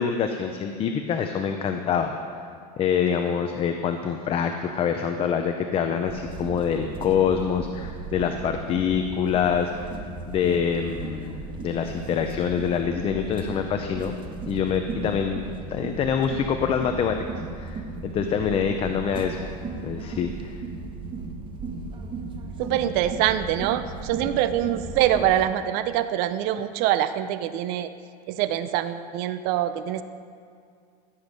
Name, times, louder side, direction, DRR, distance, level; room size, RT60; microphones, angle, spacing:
voice 1, 0.0-2.1 2.8-9.7 10.3-14.1 14.4-19.4 19.8-20.6, left 7 dB, 30° left, 6 dB, 0.6 m, -25 dB
sound 1, 6.1-25.4, right 3 dB, 25° right, 1.1 m, -36 dB
voice 2, 22.6-27.9 28.3-30.0, right 11 dB, 50° right, 12 dB, 0.5 m, -24 dB
15.5 x 8.0 x 5.3 m, 2.2 s
supercardioid pair, 140°, 21 cm